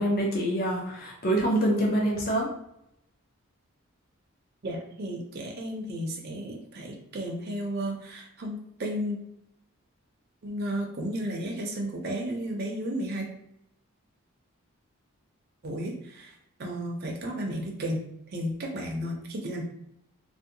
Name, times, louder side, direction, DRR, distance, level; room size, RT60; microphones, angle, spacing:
voice 1, 0.0-2.5, right 1 dB, 45° left, -3 dB, 0.5 m, -25 dB
voice 2, 4.6-9.2 10.4-13.2 15.6-16.3 16.6-18.0 18.3-19.6, equal, 45° right, 0 dB, 0.5 m, -33 dB
2.6 x 2.1 x 2.7 m, 0.77 s
head